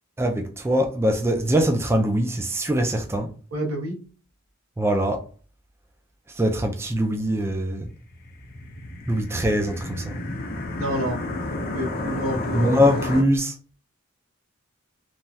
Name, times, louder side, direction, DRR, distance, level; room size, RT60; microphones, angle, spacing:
voice 1, 0.2-3.3 4.8-5.2 6.4-7.9 9.1-10.2 12.5-13.7, equal, 10° right, 0.3 m, -23 dB
voice 2, 3.5-4.0 10.8-11.2 11.7-12.7, right 1 dB, 85° right, 1.1 m, -28 dB
sound 1, 8.0-13.2, left 2 dB, 45° left, 0.5 m, -31 dB
3.1 x 2.3 x 2.6 m
head